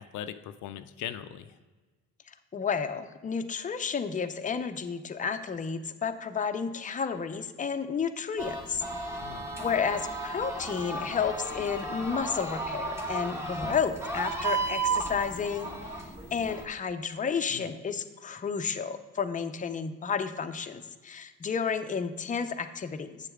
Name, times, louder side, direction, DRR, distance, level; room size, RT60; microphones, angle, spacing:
voice 1, 0.0-1.6 9.2-9.5 17.5-17.7, left 10 dB, 80° left, 10 dB, 0.5 m, -40 dB
voice 2, 2.5-8.8 9.6-15.7 16.3-23.2, left 6 dB, 25° left, 7 dB, 0.6 m, -31 dB
sound 1, 8.4-16.6, right 3 dB, 10° right, 1.3 m, -34 dB
8.3 x 6.8 x 3.6 m, 1.3 s
cardioid pair, 90°, 30 cm